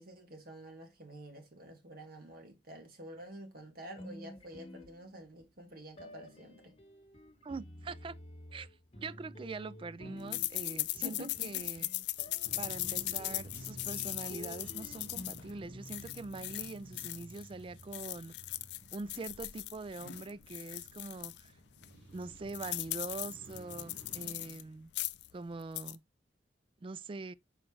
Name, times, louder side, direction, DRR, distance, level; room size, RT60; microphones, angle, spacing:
voice 1, 0.0-6.8 11.0-11.8, equal, 55° right, 2.0 m, -49 dB
sound 1, 4.0-5.4 6.0-18.2, equal, 35° left, 1.2 m, -51 dB
voice 2, 7.4-8.2 8.5-8.7 9.0-11.9 12.6-18.3 18.9-21.5 22.1-24.9 25.3-26.0 26.8-27.3, right 3 dB, 30° right, 0.3 m, -43 dB
sound 2, 10.3-17.5 17.8-21.4 21.8-21.9 22.2-24.6 24.9-25.3 25.6-26.0, left 18 dB, 65° left, 0.4 m, -39 dB
sound 3, 12.4-24.3, right 1 dB, 80° right, 1.8 m, -54 dB
6.1 x 4.9 x 3.1 m
head